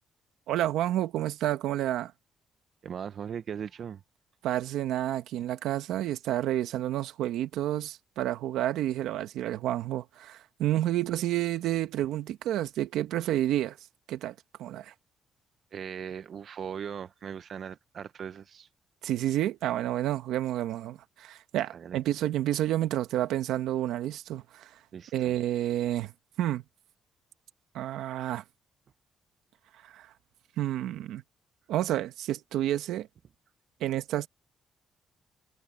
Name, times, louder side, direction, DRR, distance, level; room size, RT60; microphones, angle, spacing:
voice 1, 0.5-2.1 4.4-13.8 14.1-14.9 19.0-24.7 25.1-26.1 26.4-26.6 27.7-28.4 29.8-30.1 30.6-31.2 31.7-33.1 33.8-34.3, right 13 dB, 85° right, 1.5 m, -30 dB
voice 2, 2.8-4.0 15.7-18.7 21.7-22.0 24.9-25.3 33.8-33.9, right 8 dB, 55° right, 0.7 m, -39 dB
cardioid pair, 90°, 0 cm